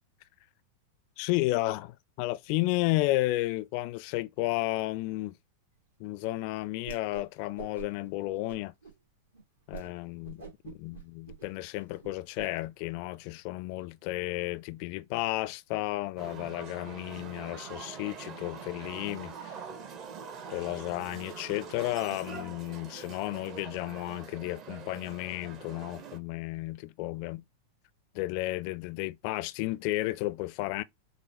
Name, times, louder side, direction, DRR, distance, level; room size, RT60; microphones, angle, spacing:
voice 1, 1.2-5.4 6.0-8.7 9.7-19.5 20.5-27.4 28.1-30.8, left 18 dB, 45° left, 0.4 m, -33 dB
Whoosh swoosh swish, 6.8-7.3 7.6-8.1 8.5-9.0 9.3-9.4 9.7-9.9 10.2-12.5, right 8 dB, 70° right, 2.0 m, -46 dB
sound 1, 16.2-26.2, right 6 dB, 35° right, 0.9 m, -44 dB
6.3 x 2.2 x 3.3 m
figure-of-eight pair, 90°, 0 cm